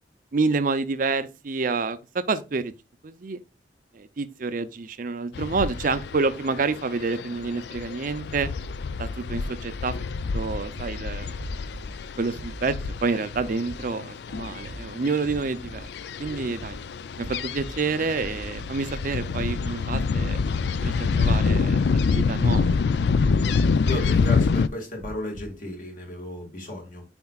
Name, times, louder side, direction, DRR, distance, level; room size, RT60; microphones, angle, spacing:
voice 1, 0.3-2.7 3.0-3.4 3.9-8.5 9.0-9.9 10.3-11.4 12.2-12.7 13.0-15.9 16.2-16.8 17.2-20.4 20.8-22.8, right 4 dB, 45° right, 0.5 m, -28 dB
sound 1, 5.3-24.7, left 4 dB, 65° left, 0.4 m, -27 dB
sound 2, 10.4-11.0 11.3-12.0 12.3-12.9 13.3-13.9 14.3-14.8 15.2-15.9 16.2-16.8 17.1-17.8 18.1-18.7 19.1-19.7 20.1-20.7 21.1-21.6 22.1-22.7 23.0-23.6 24.0-24.5 25.0-25.5, right 1 dB, 75° right, 0.8 m, -41 dB
voice 2, 23.8-27.0, left 1 dB, 45° left, 2.0 m, -34 dB
9.4 x 4.4 x 2.3 m
head